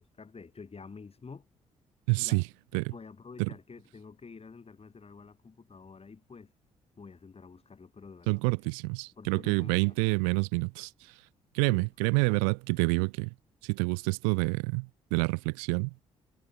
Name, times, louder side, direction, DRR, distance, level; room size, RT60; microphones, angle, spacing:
voice 1, 0.0-1.5 2.2-2.4 2.9-6.5 7.0-8.6 9.2-10.0 10.3-10.4 11.6-11.9 12.3-12.5, left 5 dB, 35° left, 4.9 m, -49 dB
voice 2, 2.1-2.4 2.7-2.9 3.4-3.5 8.3-10.9 11.5-13.3 13.6-15.9, right 40 dB or more, 75° right, 0.5 m, -28 dB
hypercardioid pair, 45°, 17 cm